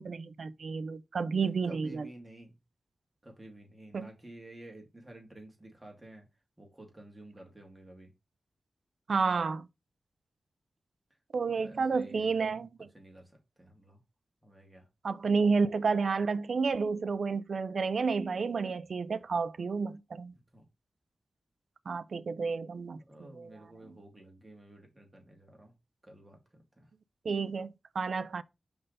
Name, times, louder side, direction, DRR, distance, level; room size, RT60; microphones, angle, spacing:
voice 1, 0.0-2.1 3.9-4.1 9.1-9.7 11.3-12.7 15.0-20.3 21.9-23.0 23.4-23.5 27.2-28.4, right 4 dB, 75° right, 0.4 m, -30 dB
voice 2, 1.4-2.6 3.2-6.3 6.6-8.1 11.1-11.2 11.5-12.7 12.9-14.0 14.4-14.9 20.3-20.6 23.0-25.8 26.0-26.9, right 1 dB, 20° right, 2.6 m, -52 dB
5.4 x 3.5 x 5.2 m
cardioid pair, 55°, 0 cm